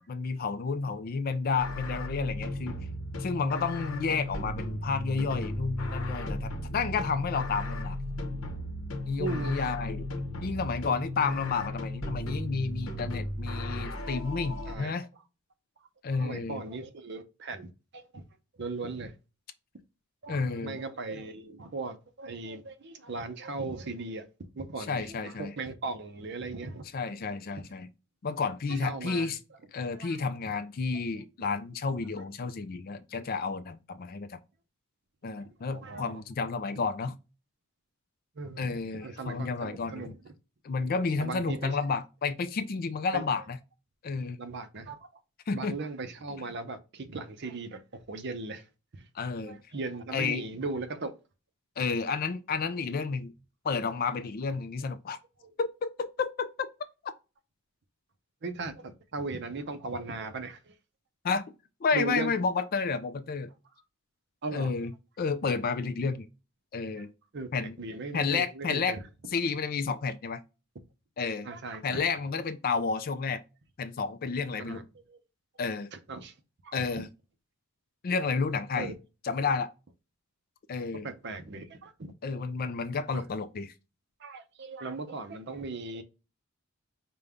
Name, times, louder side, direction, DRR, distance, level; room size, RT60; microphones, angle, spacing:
voice 1, 0.0-2.8 3.2-8.0 9.1-10.1 10.4-15.0 16.0-16.6 20.3-20.8 24.9-25.5 26.9-27.9 28.2-29.4 29.7-34.4 35.2-37.1 38.6-40.1 40.6-43.6 44.0-44.4 45.5-45.7 49.1-49.6 50.1-50.4 51.8-53.3 53.6-55.2 55.6-55.9 56.2-56.7 61.2-61.4 61.8-63.5 64.5-64.9 65.2-66.3 66.7-67.1 67.5-67.8 68.1-69.0 69.3-70.4 71.2-71.5 71.8-73.4 73.8-74.8 75.6-75.9 76.7-77.1 78.0-78.9 79.2-79.7 80.7-81.1 82.2-83.7, left 4 dB, 40° left, 0.4 m, -31 dB
sound 1, 1.6-14.8, left 1 dB, 60° left, 0.8 m, -35 dB
voice 2, 9.2-9.6 14.7-14.9 16.1-18.2 18.6-19.1 20.2-26.8 28.7-29.4 29.9-30.2 35.7-36.2 38.4-40.3 41.2-41.8 43.1-43.2 44.4-45.1 45.5-48.7 48.9-49.1 49.4-51.2 55.4-55.5 58.4-60.7 61.9-62.3 64.4-64.9 67.0-67.1 67.3-69.0 71.4-72.0 74.7-75.2 75.9-76.3 76.6-76.9 78.7-78.9 81.0-82.1 83.1-83.2 84.2-86.0, right 3 dB, 50° right, 0.6 m, -38 dB
5.2 x 2.2 x 3.5 m
head